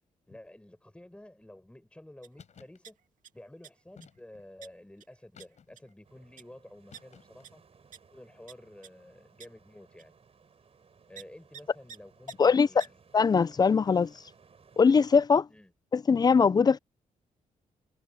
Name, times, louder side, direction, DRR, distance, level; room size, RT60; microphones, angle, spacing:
voice 1, 0.3-3.0 3.3-7.6 8.1-10.1 11.1-13.0 15.5-15.7, left 1 dB, 10° left, 5.2 m, -51 dB
sound 1, 2.2-2.4 2.6-3.3 3.6-4.0 4.6-4.7 5.0-5.1 5.4-5.5 5.8-5.9 6.4-6.5 6.9-7.0 7.4-7.5 7.9-8.0 8.5-8.6 8.8-8.9 9.4-9.5 10.0-10.1 11.1-11.2 11.5-11.6 11.9-12.0 12.3-12.4 12.8-12.9, right 8 dB, 75° right, 2.3 m, -47 dB
sound 2, 2.4-2.8 4.0-4.5 5.3-6.0 6.9-7.5, left 7 dB, 60° left, 4.0 m, -56 dB
sound 3, 6.0-15.3, right 5 dB, 45° right, 5.7 m, -61 dB
voice 2, 13.1-14.1 14.8-15.5 15.9-16.8, left 5 dB, 30° left, 0.4 m, -21 dB
cardioid pair, 85°, 14 cm